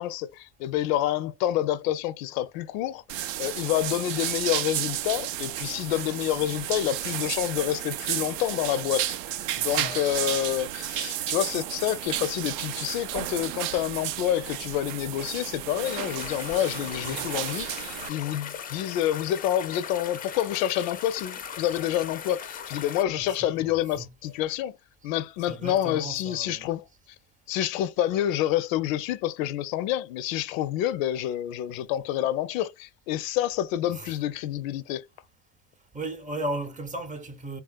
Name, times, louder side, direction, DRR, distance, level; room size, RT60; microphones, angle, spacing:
voice 1, 0.0-9.1 9.6-24.8 25.0-26.8 27.5-35.0, left 12 dB, 85° left, 0.5 m, -28 dB
sound 1, 3.1-18.1, right 12 dB, 90° right, 0.5 m, -32 dB
sound 2, 15.8-23.0, left 8 dB, 25° left, 0.4 m, -39 dB
voice 2, 17.0-17.3 23.1-24.1 25.5-26.7 33.9-34.1 35.9-37.6, right 1 dB, 20° right, 0.6 m, -36 dB
3.4 x 2.3 x 2.2 m
supercardioid pair, 105°, 38 cm